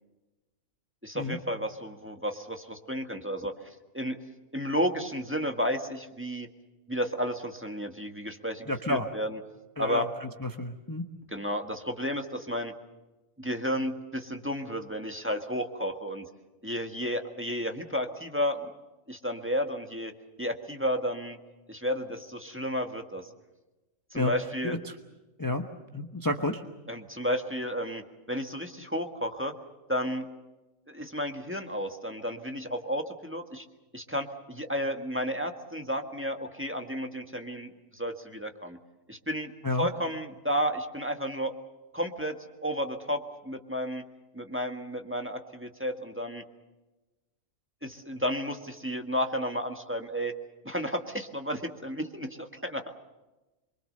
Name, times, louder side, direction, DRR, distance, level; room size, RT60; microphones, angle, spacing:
voice 1, 1.0-3.5 3.9-4.2 4.5-6.5 6.9-9.4 9.8-10.1 11.3-12.7 13.4-16.3 16.6-18.7 19.1-20.1 20.4-21.4 21.7-23.3 24.1-24.8 26.9-28.0 28.3-29.5 29.9-30.3 30.9-33.6 33.9-38.8 39.1-39.5 39.8-41.5 41.9-42.4 42.6-44.0 44.3-46.4 47.8-50.3 50.6-52.9, equal, 10° right, 4 dB, 1.6 m, -32 dB
voice 2, 8.7-9.1 9.8-10.0 10.4-11.0 24.1-24.3 24.6-24.9 25.4-25.6 25.9-26.6 39.6-39.9, left 2 dB, 15° left, 4 dB, 1.1 m, -30 dB
25.5 x 23.5 x 6.7 m, 1.1 s
omnidirectional pair, 1.4 m